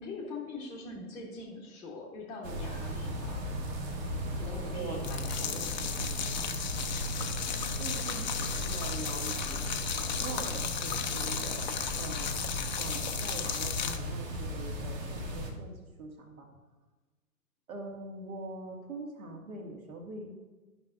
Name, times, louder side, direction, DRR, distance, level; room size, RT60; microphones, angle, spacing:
voice 1, 0.0-3.4 4.3-6.1, left 3 dB, 5° left, -7 dB, 0.8 m, -43 dB
sound 1, 2.4-15.5, right 1 dB, 30° right, 1.2 m, -37 dB
voice 2, 4.6-5.0 5.5-5.6 7.8-9.8 10.2-11.7 12.0-12.3 12.8-15.7 16.0-16.5 17.7-20.3, right 3 dB, 65° right, 1 dB, 2.0 m, -43 dB
sound 2, 4.9-14.0, left 8 dB, 30° left, 0.5 m, -35 dB
11.5 x 5.6 x 2.4 m, 1.2 s
figure-of-eight pair, 120°, 45 cm